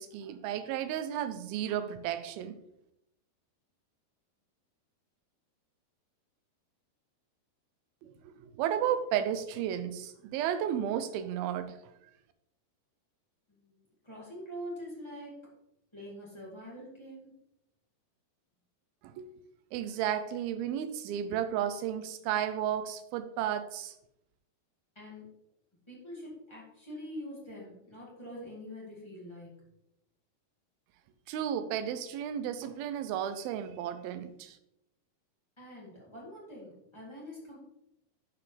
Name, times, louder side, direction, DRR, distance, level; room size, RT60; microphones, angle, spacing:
voice 1, 0.0-2.6 8.0-11.7 19.0-19.3 19.7-23.9 31.3-34.6, right 10 dB, 85° right, 9 dB, 2.1 m, -33 dB
voice 2, 13.5-15.5 15.9-17.3 24.9-25.3 25.9-29.6 35.6-37.6, equal, 25° left, -6 dB, 0.6 m, -45 dB
11.5 x 4.9 x 3.3 m, 0.82 s
omnidirectional pair, 4.9 m